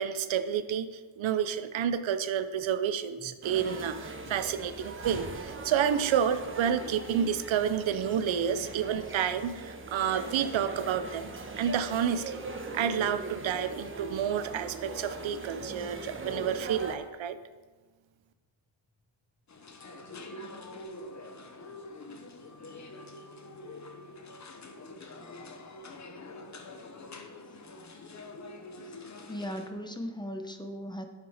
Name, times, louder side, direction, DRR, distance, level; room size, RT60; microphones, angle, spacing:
voice 1, 0.0-11.3 11.6-12.4 12.7-17.4, right 8 dB, 90° right, 11 dB, 0.7 m, -30 dB
sound 1, 3.4-17.0, right 2 dB, 25° right, 1.1 m, -40 dB
sound 2, 19.5-29.7, left 2 dB, 40° left, 1.0 m, -46 dB
voice 2, 29.3-31.1, equal, 10° left, 5 dB, 0.9 m, -37 dB
9.5 x 7.5 x 5.0 m, 1.3 s
wide cardioid pair, 115°, 45 cm